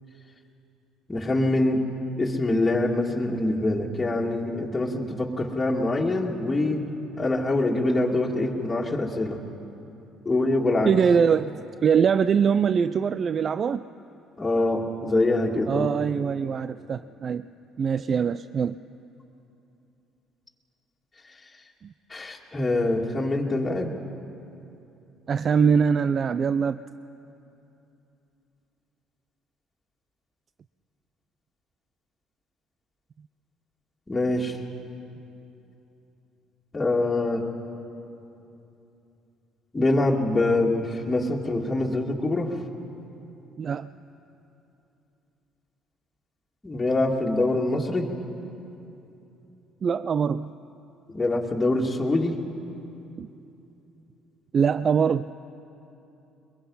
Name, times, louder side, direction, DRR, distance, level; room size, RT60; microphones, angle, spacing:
voice 1, 1.1-1.8 2.2-6.8 7.2-9.4 10.2-10.9 14.4-15.9 22.1-23.9 34.1-34.6 36.7-37.4 39.7-42.6 46.6-48.1 51.1-52.4, left 2 dB, 20° left, -3 dB, 2.3 m, -24 dB
voice 2, 10.8-13.8 15.7-17.5 17.8-18.8 21.8-21.9 25.3-26.8 43.6-43.9 49.8-50.6 53.2-53.3 54.5-55.3, right 6 dB, 45° right, 14 dB, 0.4 m, -23 dB
22.5 x 22.0 x 5.6 m, 2.9 s
supercardioid pair, 70°, 0 cm